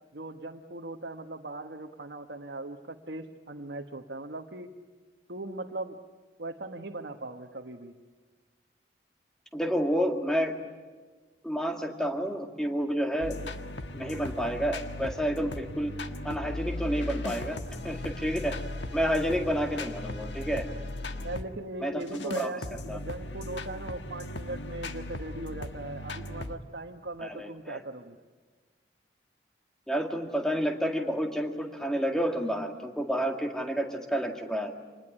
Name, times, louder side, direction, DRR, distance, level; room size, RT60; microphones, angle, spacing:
voice 1, 0.1-4.7 5.3-6.0 6.4-7.9 21.2-28.2, right 2 dB, 70° right, 2 dB, 1.3 m, -39 dB
voice 2, 9.5-10.5 11.4-13.4 13.9-15.9 16.2-17.6 17.8-18.5 18.9-20.6 21.8-22.5 22.9-23.0 27.2-27.8 29.9-34.7, equal, 5° left, 3 dB, 2.1 m, -30 dB
sound 1, 13.2-21.5 22.0-26.6, left 2 dB, 85° left, 1.6 m, -37 dB
26.5 x 20.5 x 10.0 m, 1.4 s
head